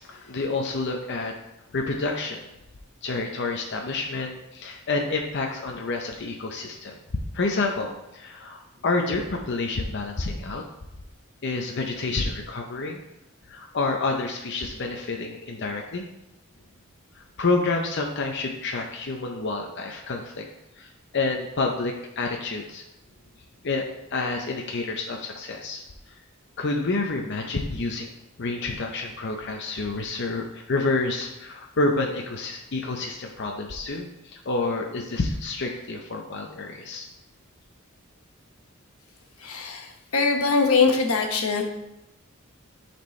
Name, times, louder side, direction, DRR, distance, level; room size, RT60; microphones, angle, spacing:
voice 1, 0.2-1.4 1.7-2.4 3.0-7.0 7.3-10.6 11.4-13.0 13.5-16.1 17.2-20.5 20.8-22.8 23.6-26.2 26.6-28.1 28.4-37.1, left 3 dB, 55° left, 1 dB, 0.7 m, -29 dB
voice 2, 39.4-41.6, left 4 dB, 90° left, 3 dB, 1.1 m, -22 dB
11.0 x 4.4 x 3.2 m, 0.89 s
head